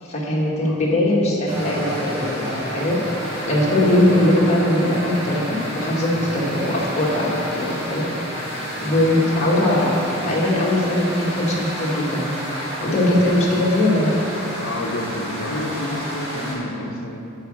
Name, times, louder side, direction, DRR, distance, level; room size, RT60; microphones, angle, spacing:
voice 1, 0.0-3.0 3.5-8.0 8.8-12.3 12.8-14.1, left 1 dB, 30° left, -5 dB, 1.6 m, -20 dB
sound 1, 1.5-16.5, equal, 25° right, 2.3 m, -30 dB
voice 2, 3.7-4.2 12.8-13.3 14.6-17.2, left 1 dB, 65° left, 2 dB, 0.8 m, -29 dB
8.3 x 4.9 x 7.5 m, 2.8 s
head